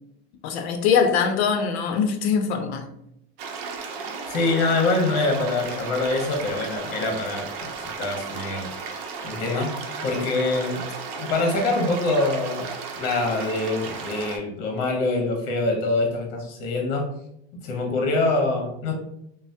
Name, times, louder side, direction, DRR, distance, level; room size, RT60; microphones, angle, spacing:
voice 1, 0.4-2.9, left 6 dB, 80° left, 0.6 m, -22 dB
sound 1, 3.4-14.4, right 5 dB, 65° right, 0.6 m, -34 dB
voice 2, 4.3-7.7 8.0-8.7 9.2-9.7 10.0-10.8 11.2-12.7 13.0-17.1 17.6-18.9, left 2 dB, 50° left, 0.9 m, -24 dB
3.1 x 2.0 x 2.7 m
supercardioid pair, 145°, 32 cm